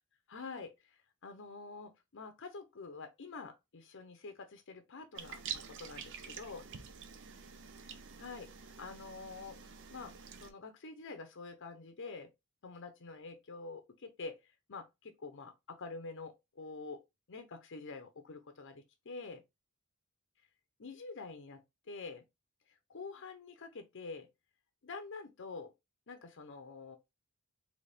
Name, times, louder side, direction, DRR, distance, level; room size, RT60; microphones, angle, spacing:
voice 1, 0.3-6.6 7.9-10.1 10.4-12.3 12.6-14.4 14.7-17.0 17.3-19.4 20.8-21.6 21.9-22.2 22.9-24.3 24.8-25.7 26.1-27.0, left 4 dB, 55° left, 0.7 m, -47 dB
sound 1, 5.1-10.5, right 7 dB, 55° right, 0.6 m, -47 dB
4.2 x 2.9 x 3.3 m
head